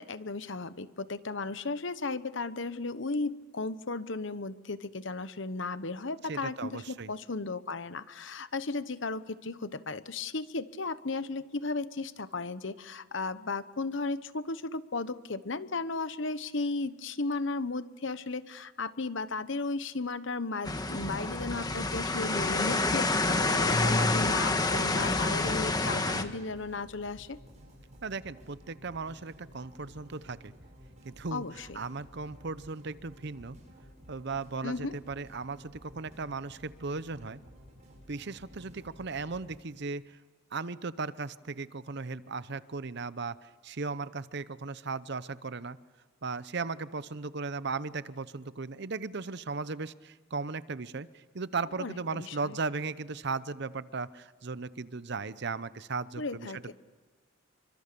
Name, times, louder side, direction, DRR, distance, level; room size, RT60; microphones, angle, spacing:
voice 1, 0.0-27.4 31.3-31.8 34.6-35.0 51.8-52.6 56.2-56.7, left 3 dB, 65° left, 13 dB, 1.0 m, -35 dB
voice 2, 6.3-7.1 28.0-30.5 31.0-31.4 31.7-33.6 34.1-37.4 38.1-40.2 40.5-45.8 46.2-56.7, right 4 dB, 55° right, 16 dB, 0.8 m, -37 dB
sound 1, 20.6-26.2, left 2 dB, 20° left, 1.4 m, -28 dB
sound 2, 25.7-39.6, equal, 35° right, 7.7 m, -53 dB
27.5 x 25.0 x 6.9 m, 1.3 s
head